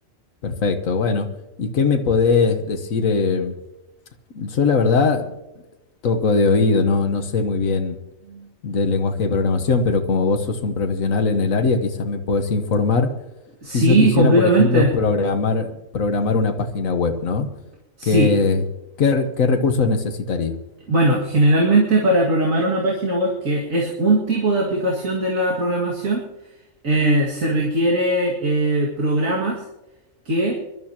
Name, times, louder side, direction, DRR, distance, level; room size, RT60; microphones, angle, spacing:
voice 1, 0.4-1.3 1.6-3.6 4.3-5.3 6.0-8.0 8.6-13.1 13.7-17.5 18.0-18.6 19.0-20.5, left 4 dB, 80° left, 7 dB, 1.6 m, -20 dB
voice 2, 13.6-14.9 18.0-18.3 20.9-26.2 26.8-29.6 30.3-30.6, right 1 dB, 75° right, -3 dB, 2.5 m, -19 dB
25.0 x 12.5 x 2.9 m, 0.97 s
omnidirectional pair, 1.4 m